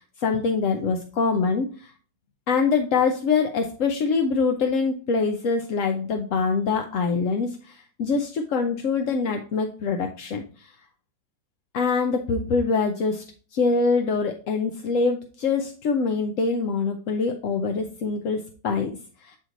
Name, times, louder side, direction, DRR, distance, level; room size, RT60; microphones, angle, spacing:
voice 1, 0.0-1.9 2.5-10.7 11.7-13.2 13.5-19.4, left 4 dB, 60° left, 4 dB, 0.9 m, -24 dB
8.9 x 3.0 x 3.8 m, 0.39 s
omnidirectional pair, 1.9 m